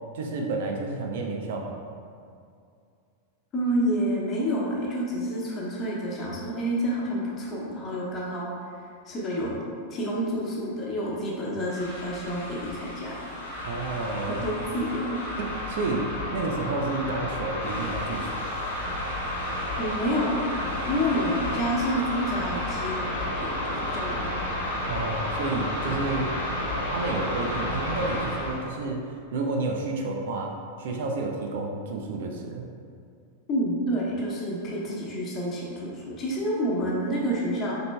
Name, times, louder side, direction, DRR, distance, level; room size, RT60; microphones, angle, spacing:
voice 1, 0.1-1.8 13.6-14.4 15.4-16.1 16.3-18.4 24.9-26.3 26.9-29.0 29.3-32.7, right 3 dB, 55° right, 1 dB, 0.5 m, -30 dB
voice 2, 3.5-8.5 9.1-9.6 9.9-13.2 14.3-15.2 19.8-20.5 20.9-24.3 25.9-26.0 33.5-37.7, equal, 30° left, -4 dB, 1.0 m, -29 dB
sound 1, 11.6-28.6, left 1 dB, 65° left, 1.0 m, -31 dB
5.1 x 4.3 x 2.2 m, 2.4 s
figure-of-eight pair, 90°, 0 cm